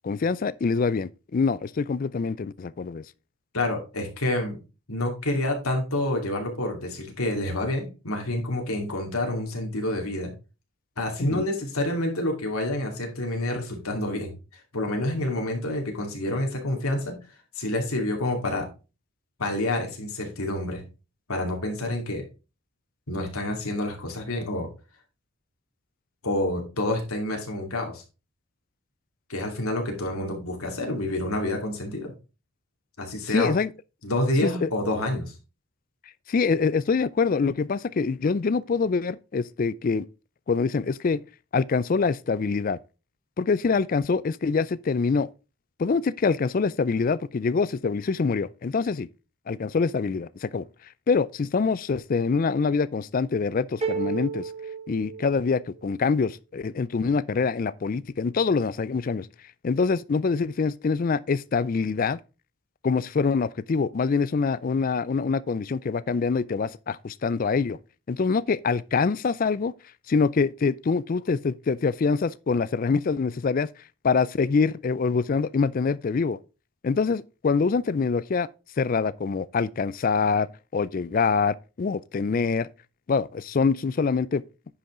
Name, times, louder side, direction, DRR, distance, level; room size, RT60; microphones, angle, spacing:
voice 1, 0.0-3.0 11.2-11.5 33.3-33.7 34.4-34.7 36.3-40.1 40.5-41.2 41.5-42.8 43.4-45.3 45.8-49.1 49.5-50.7 51.1-54.5 54.9-59.3 59.6-62.2 62.8-67.8 68.1-69.7 70.1-73.7 74.0-76.4 76.8-78.5 78.8-82.7 83.1-84.4, left 4 dB, 40° left, 0.3 m, -25 dB
voice 2, 3.5-4.6 4.9-10.3 11.0-14.3 14.7-17.2 17.6-18.7 19.4-20.8 21.3-22.2 23.1-24.7 26.2-28.0 29.3-32.1 33.0-33.5 34.0-35.3, left 1 dB, 75° left, 2.5 m, -28 dB
sound 1, 53.8-55.8, right 5 dB, 25° right, 1.5 m, -32 dB
10.0 x 5.4 x 3.7 m
head